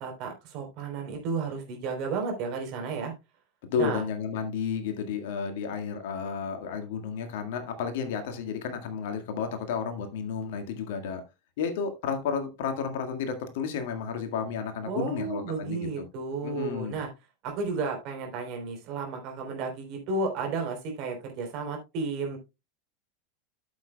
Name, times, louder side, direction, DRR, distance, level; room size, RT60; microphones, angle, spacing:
voice 1, 0.0-3.1 3.8-4.0 14.8-17.1 17.4-22.4, right 4 dB, 45° right, 2 dB, 3.6 m, -32 dB
voice 2, 3.7-11.2 11.6-16.0 16.4-16.9, left 6 dB, 60° left, 6 dB, 1.7 m, -32 dB
13.5 x 7.3 x 2.2 m, 0.25 s
figure-of-eight pair, 85°, 0 cm